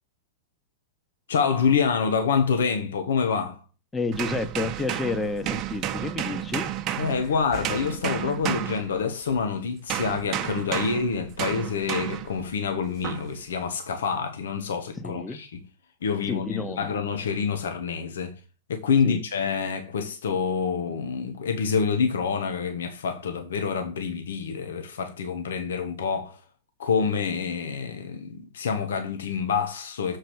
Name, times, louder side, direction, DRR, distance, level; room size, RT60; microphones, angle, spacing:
voice 1, 1.3-3.6 7.0-15.6 16.0-18.4 18.7-26.4 26.8-30.2, left 6 dB, 80° left, 1.2 m, -27 dB
voice 2, 3.9-6.8 15.0-15.4 16.3-16.9 19.0-19.2, left 3 dB, 15° left, 1.1 m, -30 dB
sound 1, 4.1-9.4 9.9-12.4 13.0-13.3, right 11 dB, 40° right, 0.8 m, -32 dB
6.9 x 4.8 x 6.2 m
hypercardioid pair, 115°, 0 cm